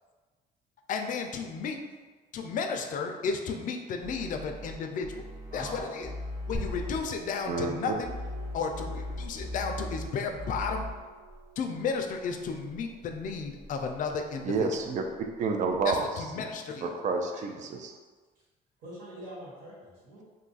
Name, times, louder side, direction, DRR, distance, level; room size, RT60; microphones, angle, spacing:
voice 1, 0.9-1.8 2.3-5.3 5.5-6.1 6.5-8.1 8.5-10.9 11.6-14.7 15.8-16.9, left 5 dB, 50° left, 4 dB, 0.4 m, -33 dB
sound 1, 4.0-4.7 5.0-7.0 8.0-10.1 10.3-10.9, left 1 dB, 15° right, 1.0 m, -38 dB
voice 2, 5.5-5.9 17.3-17.5 18.8-20.2, equal, 65° right, -10 dB, 1.4 m, -43 dB
sound 2, 6.5-15.9, right 1 dB, 5° left, 0.8 m, -47 dB
voice 3, 7.5-7.9 14.4-15.0 15.4-16.1 16.8-17.9, right 4 dB, 45° right, 3 dB, 0.4 m, -29 dB
2.6 x 2.3 x 3.9 m, 1.4 s
cardioid pair, 110°, 17 cm